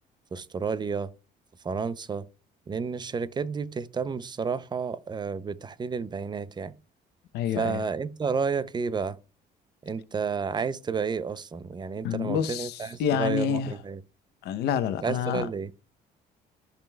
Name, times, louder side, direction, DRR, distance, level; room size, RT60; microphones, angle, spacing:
voice 1, 0.3-1.1 1.6-2.2 2.7-6.7 7.6-9.2 9.8-14.0 15.0-15.7, right 5 dB, 25° right, 0.6 m, -31 dB
voice 2, 7.3-7.8 12.0-13.7 14.4-15.5, left 8 dB, 80° left, 0.8 m, -28 dB
13.5 x 5.3 x 2.3 m
cardioid pair, 110°, 17 cm